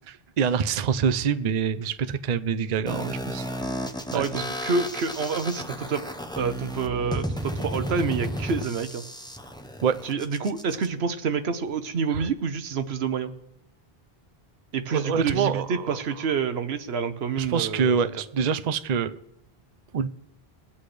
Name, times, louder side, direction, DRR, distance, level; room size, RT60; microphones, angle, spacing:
voice 1, 0.1-3.5 4.1-4.2 9.8-10.0 12.1-12.2 14.9-16.0 17.4-19.2 19.9-20.1, right 6 dB, 50° right, 11 dB, 0.6 m, -25 dB
sound 1, 2.9-10.9, equal, 5° left, 0.6 m, -33 dB
voice 2, 4.1-6.1 6.4-9.0 10.0-13.3 14.7-18.0, right 5 dB, 85° right, 9 dB, 1.1 m, -28 dB
21.5 x 8.5 x 3.3 m, 0.85 s
omnidirectional pair, 1.0 m